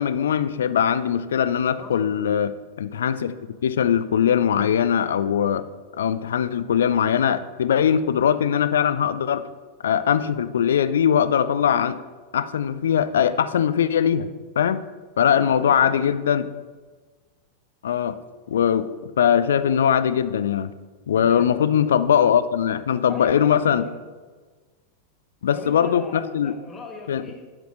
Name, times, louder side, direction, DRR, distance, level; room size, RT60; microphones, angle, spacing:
voice 1, 0.0-2.5 2.8-3.3 3.6-5.6 6.0-9.4 9.8-12.0 12.3-14.3 14.6-14.8 15.2-16.5 17.8-18.2 18.5-18.9 19.2-20.7 21.1-23.8 25.4-26.5 27.1-27.2, left 8 dB, 65° left, 13 dB, 0.4 m, -21 dB
voice 2, 1.8-2.2 15.3-16.2 21.2-21.6 23.1-24.0 25.5-27.5, left 2 dB, 20° left, 1 dB, 1.7 m, -39 dB
10.5 x 5.0 x 6.2 m, 1.4 s
figure-of-eight pair, 90°, 0 cm